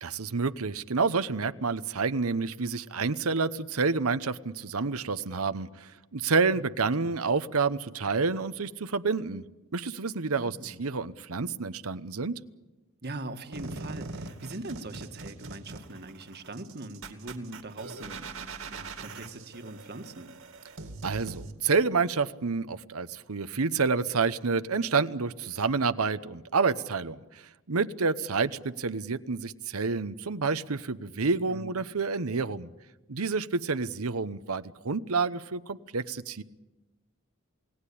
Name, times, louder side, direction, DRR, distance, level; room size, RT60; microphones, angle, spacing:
voice 1, 0.0-9.4 9.7-12.4 21.0-32.7 33.1-36.4, right 4 dB, 90° right, 12 dB, 0.9 m, -29 dB
voice 2, 10.4-10.8 13.0-20.3 31.5-31.8, right 2 dB, 50° right, 7 dB, 1.7 m, -41 dB
sound 1, 13.5-21.5, right 3 dB, 70° right, 2.5 m, -42 dB
28.5 x 18.0 x 8.6 m, 1.1 s
head